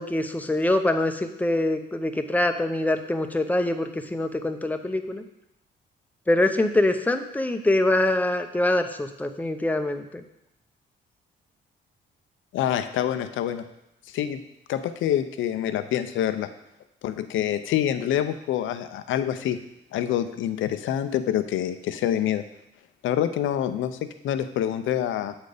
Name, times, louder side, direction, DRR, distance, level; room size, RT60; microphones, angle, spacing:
voice 1, 0.0-5.2 6.3-10.2, left 1 dB, 10° left, 7 dB, 0.6 m, -24 dB
voice 2, 12.5-13.6 14.1-14.4 14.7-16.5 17.0-19.6 19.9-22.4 23.0-25.3, left 10 dB, 80° left, 11 dB, 0.6 m, -26 dB
8.0 x 4.2 x 5.0 m, 0.86 s
cardioid pair, 90°, 20 cm